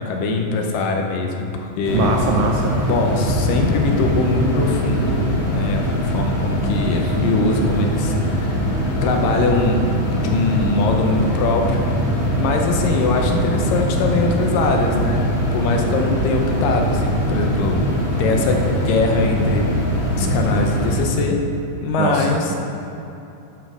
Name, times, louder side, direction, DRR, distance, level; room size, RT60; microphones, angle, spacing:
voice 1, 0.0-2.2 2.9-8.6 9.0-9.9 10.1-15.2 15.5-19.7 20.2-21.4 21.8-22.6, left 3 dB, 75° left, 2 dB, 2.4 m, -22 dB
sound 1, 1.8-21.0, equal, 45° left, 3.4 m, -22 dB
voice 2, 1.9-2.7 22.0-22.5, right 4 dB, 75° right, 1 dB, 1.8 m, -22 dB
9.4 x 5.9 x 6.1 m, 2.9 s
omnidirectional pair, 4.0 m